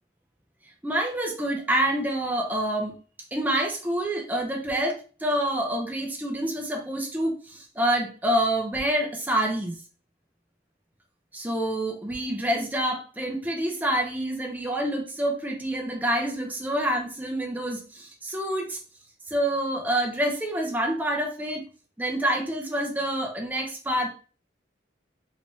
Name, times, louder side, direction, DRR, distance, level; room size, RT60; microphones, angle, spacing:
voice 1, 0.8-2.9 3.3-9.8 11.3-18.8 19.3-21.7 22.0-24.1, right 1 dB, 10° right, 1 dB, 0.6 m, -27 dB
3.3 x 3.1 x 2.7 m, 0.39 s
head